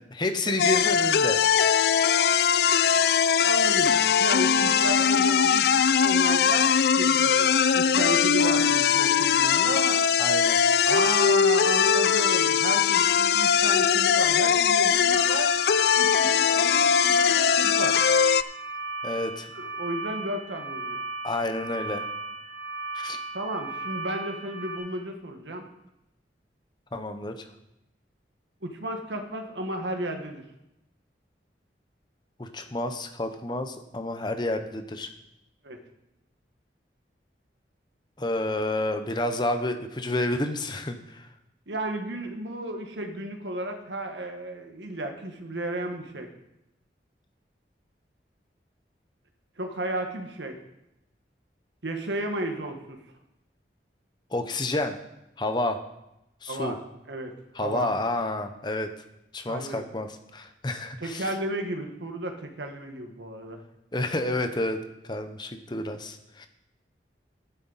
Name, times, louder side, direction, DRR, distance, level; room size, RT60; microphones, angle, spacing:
voice 1, 0.1-1.4 10.2-10.6 19.0-19.5 21.2-22.0 22.9-23.2 26.9-27.5 32.4-35.1 38.2-41.3 54.3-55.0 55.4-55.8 56.4-56.7 57.5-58.9 59.3-61.3 63.9-64.8 65.0-66.5, left 2 dB, 25° left, 7 dB, 0.8 m, -29 dB
sound 1, 0.6-18.4, left 7 dB, 60° left, 0.3 m, -21 dB
voice 2, 3.4-10.1 10.8-15.5 15.9-18.0 19.5-21.0 23.3-25.6 28.6-30.4 35.6-35.8 41.7-46.3 49.6-50.6 51.8-53.0 56.5-56.8 57.1-57.3 57.6-57.9 59.5-59.9 61.0-63.6, right 1 dB, 85° right, 4 dB, 1.5 m, -33 dB
sound 2, 15.1-24.8, right 3 dB, 60° right, 4.3 m, -36 dB
11.5 x 10.0 x 4.1 m, 0.87 s
head